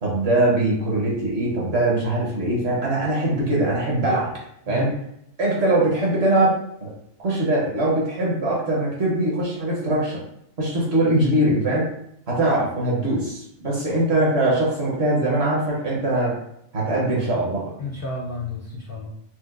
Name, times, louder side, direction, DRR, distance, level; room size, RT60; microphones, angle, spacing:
voice 1, 0.0-4.4 4.7-4.9 5.4-6.9 7.2-10.2 10.6-11.9 12.3-16.4 16.7-17.7, right 1 dB, 50° right, -4 dB, 1.1 m, -22 dB
voice 2, 4.7-5.1 17.8-19.1, left 2 dB, 70° left, -3 dB, 0.5 m, -31 dB
4.4 x 2.0 x 2.4 m, 0.75 s
omnidirectional pair, 1.5 m